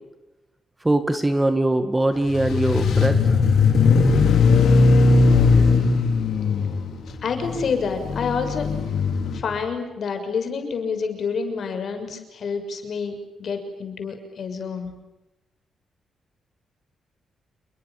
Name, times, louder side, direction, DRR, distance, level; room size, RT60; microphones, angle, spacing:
voice 1, 0.8-3.2, right 1 dB, 10° right, 9 dB, 2.0 m, -21 dB
sound 1, 2.3-9.4, left 4 dB, 70° left, 5.4 m, -18 dB
voice 2, 7.2-8.7 9.3-14.9, left 5 dB, 50° left, 7 dB, 6.5 m, -28 dB
29.0 x 23.0 x 7.4 m, 1.0 s
cardioid pair, 140°, 0 cm